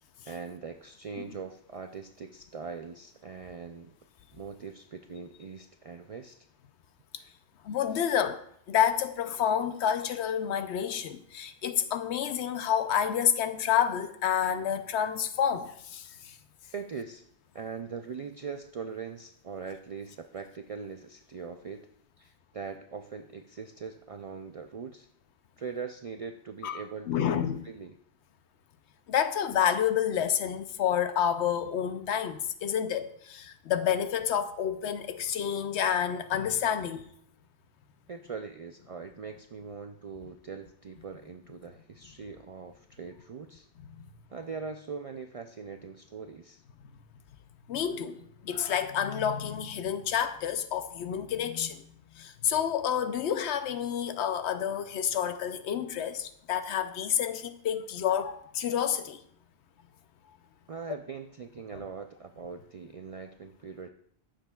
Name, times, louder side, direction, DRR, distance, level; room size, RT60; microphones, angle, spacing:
voice 1, 0.2-3.9 4.3-6.5 16.7-17.2 17.5-21.9 22.2-25.1 25.6-28.0 38.1-43.7 44.3-46.6 60.7-63.9, right 5 dB, 65° right, 0.3 m, -41 dB
voice 2, 7.6-8.4 8.7-16.3 26.6-27.6 29.1-37.1 43.9-44.0 47.7-51.9 52.2-59.2, left 9 dB, 90° left, 0.9 m, -29 dB
14.5 x 6.5 x 2.3 m
omnidirectional pair, 1.1 m